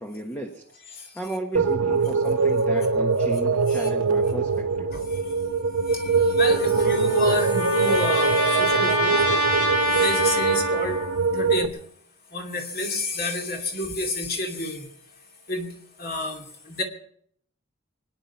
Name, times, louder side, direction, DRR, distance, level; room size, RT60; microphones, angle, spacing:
voice 1, 0.0-4.9, right 1 dB, 10° left, 3 dB, 1.2 m, -35 dB
sound 1, 1.5-11.7, right 4 dB, 85° right, 0.9 m, -23 dB
voice 2, 4.9-5.2 5.9-9.2 9.9-11.0 11.3-11.8 12.3-14.9 15.5-16.8, left 1 dB, 45° left, 3 dB, 2.6 m, -30 dB
Trumpet, 6.4-11.2, equal, 85° left, 4.8 m, -26 dB
23.5 x 10.0 x 5.7 m, 0.65 s
head